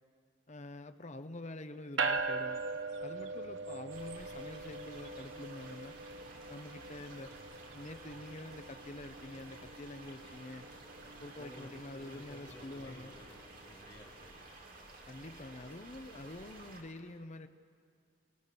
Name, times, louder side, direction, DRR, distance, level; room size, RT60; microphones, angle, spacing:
voice 1, 0.5-2.6 3.0-5.9 6.5-7.3 7.7-10.7 11.2-13.1 15.1-17.5, left 1 dB, 35° left, 9 dB, 0.9 m, -47 dB
sound 1, 2.0-13.6, right 4 dB, 80° right, 0.9 m, -42 dB
sound 2, 3.9-16.8, right 2 dB, 50° right, 3.3 m, -53 dB
voice 2, 11.4-14.4, left 1 dB, 20° left, -3 dB, 2.4 m, -54 dB
29.5 x 18.5 x 6.8 m, 2.2 s
head